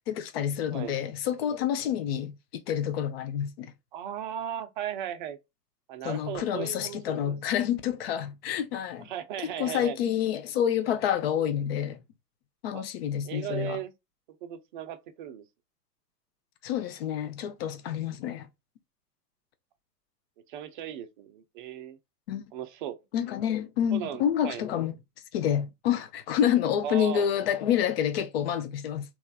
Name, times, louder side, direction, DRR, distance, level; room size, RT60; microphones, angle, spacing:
voice 1, 0.1-3.7 6.0-9.1 9.6-12.0 12.6-13.8 16.6-18.5 22.3-22.4 23.1-24.9 25.3-29.0, left 9 dB, 40° left, 0.6 m, -28 dB
voice 2, 3.9-5.4 5.9-7.4 9.0-10.0 12.7-12.8 13.2-13.9 14.4-15.4 20.5-22.0 22.5-23.0 23.9-24.6 26.8-27.5, right 10 dB, 30° right, 0.5 m, -36 dB
3.2 x 3.0 x 2.3 m
figure-of-eight pair, 105°, 50 cm